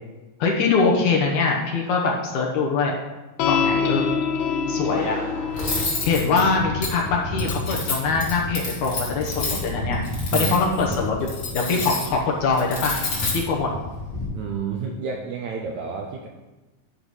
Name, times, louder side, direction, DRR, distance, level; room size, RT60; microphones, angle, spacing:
voice 1, 0.4-3.0 3.5-4.1 4.7-5.2 5.5-5.8 6.0-10.1 10.3-13.0 13.3-13.7, left 4 dB, 70° left, -1 dB, 2.2 m, -23 dB
sound 1, 3.4-10.1, left 6 dB, 85° left, 1.6 m, -28 dB
Thunder, 4.8-7.4 7.7-7.8 8.3-8.4, equal, 25° right, 0.8 m, -38 dB
Cutlery silverware, 5.5-14.3, left 2 dB, 40° left, 1.9 m, -29 dB
voice 2, 10.3-11.0 14.2-16.3, right 6 dB, 75° right, 1 dB, 1.7 m, -30 dB
10.0 x 4.6 x 5.4 m, 1.1 s
omnidirectional pair, 4.0 m